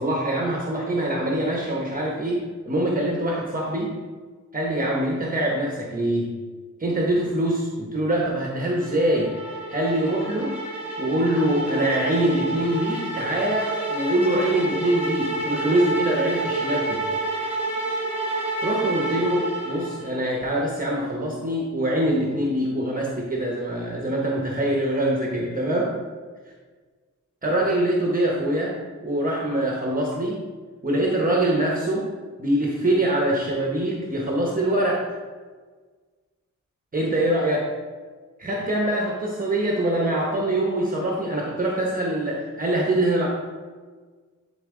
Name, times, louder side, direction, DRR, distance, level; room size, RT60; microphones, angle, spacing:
voice 1, 0.0-3.9 4.5-6.3 6.8-9.3 9.7-10.6 11.0-17.0 18.6-25.9 27.4-28.8 29.0-30.4 30.8-32.1 32.4-35.0 36.9-37.7 38.4-43.3, right 1 dB, 25° right, -2 dB, 1.0 m, -24 dB
sound 1, 8.8-20.1, right 2 dB, 5° right, 2.3 m, -29 dB
11.5 x 4.0 x 3.7 m, 1.5 s
wide cardioid pair, 140°, 31 cm